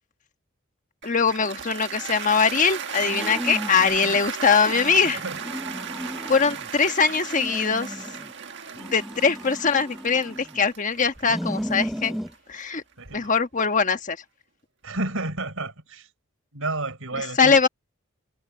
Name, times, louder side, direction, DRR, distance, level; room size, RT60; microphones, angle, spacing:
voice 1, 1.0-5.2 6.3-8.0 8.8-12.2 12.5-12.8 13.1-14.2 17.4-17.7, left 5 dB, 40° left, 1.3 m, -22 dB
Cheering / Applause, 1.0-13.2, right 7 dB, 60° right, 1.6 m, -36 dB
sound 1, 3.0-4.2 4.6-6.7 7.1-8.3 8.7-10.7 11.2-12.3, equal, ahead, 0.7 m, -35 dB
voice 2, 5.0-5.4 13.0-13.3 14.8-16.1 16.5-17.6, right 2 dB, 85° right, 4.6 m, -31 dB
head